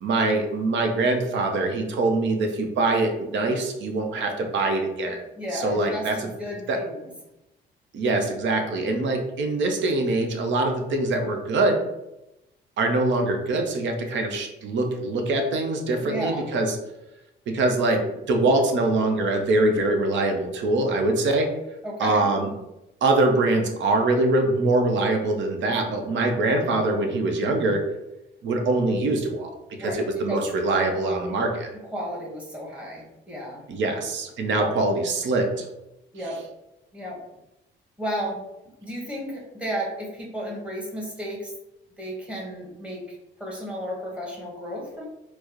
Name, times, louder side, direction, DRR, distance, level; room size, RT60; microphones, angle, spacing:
voice 1, 0.0-5.2 5.5-6.3 6.7-6.8 7.9-11.8 12.8-16.8 17.5-18.0 18.3-21.5 22.0-22.5 23.0-27.8 28.4-29.5 29.8-31.7 33.7-35.6, right 2 dB, 70° right, 3 dB, 0.7 m, -23 dB
voice 2, 5.3-7.1 16.0-16.5 21.8-22.2 29.8-30.5 31.9-33.6 34.5-34.7 36.1-36.4 36.9-37.2 38.0-38.4 38.8-41.5 42.0-45.1, equal, 5° right, -4 dB, 1.2 m, -33 dB
4.5 x 2.0 x 2.9 m, 0.91 s
cardioid pair, 90°, 20 cm